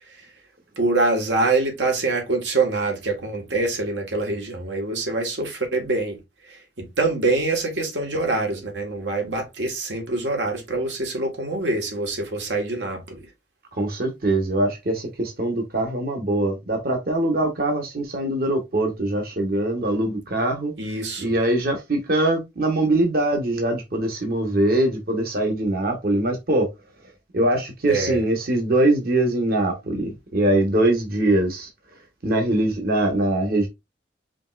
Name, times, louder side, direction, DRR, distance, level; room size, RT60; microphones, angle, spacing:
voice 1, 0.8-6.2 6.5-13.2 20.8-21.3 27.9-28.2, right 3 dB, 90° right, 1.4 m, -25 dB
voice 2, 13.8-20.7 21.2-26.7 27.3-31.7 32.2-33.7, right 1 dB, 55° right, 1.0 m, -22 dB
5.1 x 3.0 x 2.4 m
head